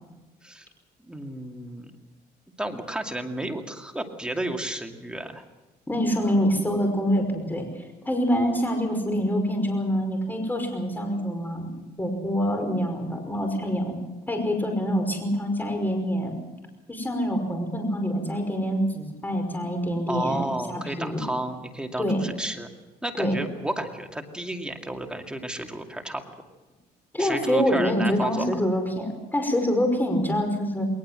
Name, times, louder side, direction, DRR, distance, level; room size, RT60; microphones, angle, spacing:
voice 1, 1.1-1.9 2.6-5.4 20.1-22.7 23.0-26.2 27.2-28.5, right 1 dB, 5° right, 4 dB, 2.4 m, -32 dB
voice 2, 5.9-7.6 8.1-11.7 12.0-13.9 14.3-16.3 16.9-21.2 22.0-22.2 23.2-23.4 27.1-30.9, equal, 10° left, 4 dB, 5.3 m, -25 dB
21.0 x 19.5 x 7.7 m, 1.1 s
cardioid pair, 110°, 17 cm